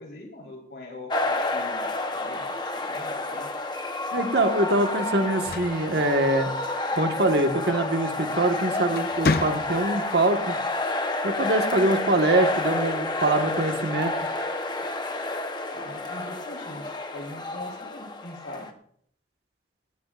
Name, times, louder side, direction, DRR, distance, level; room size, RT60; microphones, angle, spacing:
voice 1, 0.0-3.5 15.7-16.8 17.1-18.7, left 1 dB, 70° left, 0 dB, 4.0 m, -42 dB
sound 1, 1.1-18.7, left 2 dB, 25° left, 0.9 m, -30 dB
voice 2, 4.1-6.5 7.0-10.6 11.2-14.1, right 1 dB, 60° right, 5 dB, 1.5 m, -24 dB
sound 2, 5.2-6.8 8.2-8.5 8.9-10.1, left 3 dB, 55° left, 0.7 m, -30 dB
17.0 x 17.0 x 2.5 m, 0.64 s
head